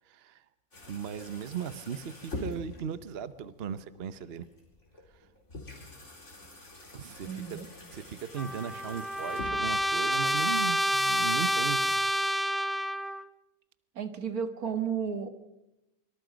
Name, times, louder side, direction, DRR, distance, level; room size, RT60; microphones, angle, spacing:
voice 1, 0.1-0.4 0.9-4.5 6.9-7.6 7.9-12.1, right 8 dB, 50° right, 13 dB, 1.0 m, -37 dB
sound 1, 0.7-10.7, left 2 dB, 55° left, 4.6 m, -46 dB
voice 2, 7.2-7.7 14.0-15.3, right 7 dB, 90° right, 8 dB, 2.2 m, -33 dB
Trumpet, 8.4-13.2, equal, ahead, 0.3 m, -28 dB
25.0 x 24.5 x 5.2 m, 0.91 s
omnidirectional pair, 1.5 m